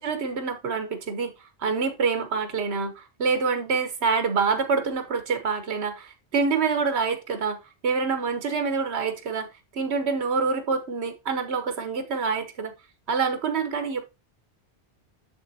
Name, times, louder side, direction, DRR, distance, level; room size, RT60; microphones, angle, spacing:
voice 1, 0.0-1.3 1.6-7.6 7.8-9.5 9.7-12.7 13.1-14.1, right 5 dB, 75° right, 1.3 m, -26 dB
6.9 x 6.8 x 2.8 m
omnidirectional pair, 1.1 m